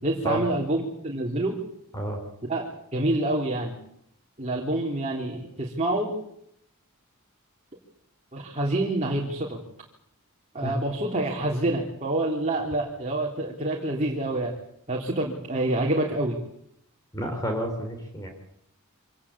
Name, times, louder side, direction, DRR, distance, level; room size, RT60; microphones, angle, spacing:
voice 1, 0.0-1.6 2.4-2.7 2.9-3.8 4.4-6.1 8.3-9.6 10.5-14.5 14.9-16.4, right 1 dB, 30° right, -1 dB, 3.3 m, -27 dB
voice 2, 17.1-18.3, right 1 dB, 15° left, 3 dB, 3.6 m, -30 dB
25.5 x 18.5 x 8.6 m, 0.74 s
head